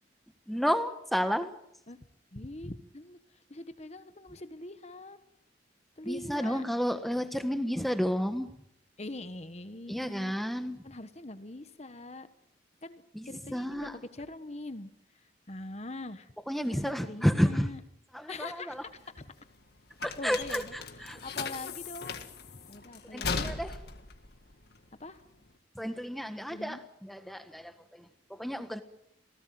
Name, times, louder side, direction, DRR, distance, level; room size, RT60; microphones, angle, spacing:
voice 1, 0.5-1.5 6.0-8.5 9.9-10.8 13.1-14.0 16.5-17.7 18.1-18.8 20.0-21.2 23.1-23.8 25.7-27.7 28.0-28.1 28.3-28.8, equal, ahead, 8 dB, 1.5 m, -31 dB
voice 2, 2.3-5.2 6.0-6.6 9.0-10.4 10.8-12.3 12.8-14.9 15.5-16.3 16.7-17.8 18.3-19.3 20.2-23.4 25.0-25.2 26.5-26.8, left 2 dB, 35° left, 11 dB, 1.3 m, -43 dB
sound 1, 18.7-25.5, left 5 dB, 55° left, 2.0 m, -38 dB
28.0 x 18.0 x 7.8 m, 0.77 s
head